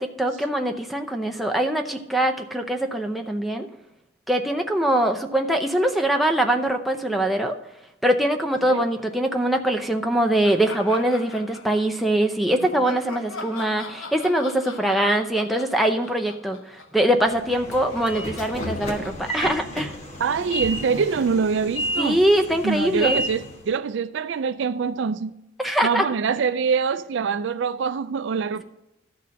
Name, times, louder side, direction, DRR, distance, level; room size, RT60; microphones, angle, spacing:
voice 1, 0.0-3.7 4.3-7.6 8.0-19.9 22.0-23.2 25.6-26.1, right 1 dB, ahead, 0.6 m, -23 dB
sound 1, 10.4-12.1 12.6-20.8, left 3 dB, 80° left, 0.9 m, -41 dB
Train / Sliding door, 17.2-23.7, equal, 35° left, 1.2 m, -31 dB
voice 2, 20.2-22.2 22.6-25.3 25.8-28.6, right 5 dB, 60° right, 0.4 m, -24 dB
12.5 x 4.3 x 6.3 m
head